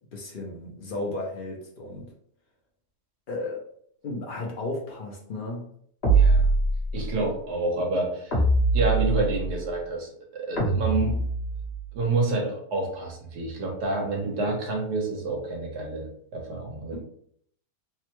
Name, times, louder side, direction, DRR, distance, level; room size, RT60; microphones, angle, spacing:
voice 1, 0.1-2.1 3.3-3.6 4.0-5.7 14.4-14.5 16.9-17.0, left 2 dB, 65° left, -1 dB, 0.5 m, -34 dB
sound 1, 6.0-7.1 8.3-9.6 10.6-11.8, right 3 dB, 45° left, 1.1 m, -22 dB
voice 2, 6.0-6.5 6.9-8.4 8.7-11.2 11.9-16.1 16.3-17.0, right 2 dB, 75° right, -1 dB, 1.5 m, -28 dB
3.5 x 2.2 x 2.9 m, 0.64 s
omnidirectional pair, 1.7 m